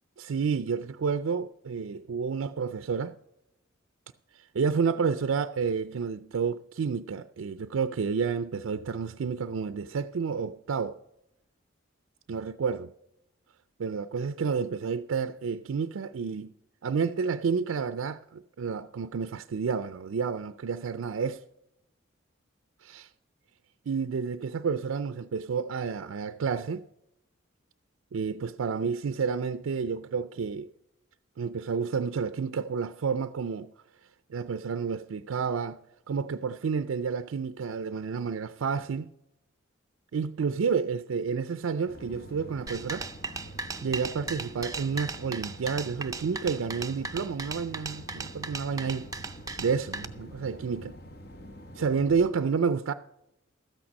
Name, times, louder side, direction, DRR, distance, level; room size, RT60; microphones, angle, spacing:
voice 1, 0.2-3.1 4.3-11.0 12.3-12.9 13.8-16.5 16.8-21.4 22.8-23.0 23.9-26.8 28.1-30.7 31.4-33.7 34.3-35.8 36.1-39.1 40.1-43.1 43.8-49.1 49.6-51.0 51.8-52.9, right 5 dB, 80° right, 0.4 m, -30 dB
sound 1, 41.9-52.3, equal, 50° left, 0.9 m, -46 dB
sound 2, 42.7-50.0, right 4 dB, 15° right, 0.5 m, -37 dB
13.0 x 8.7 x 5.2 m
head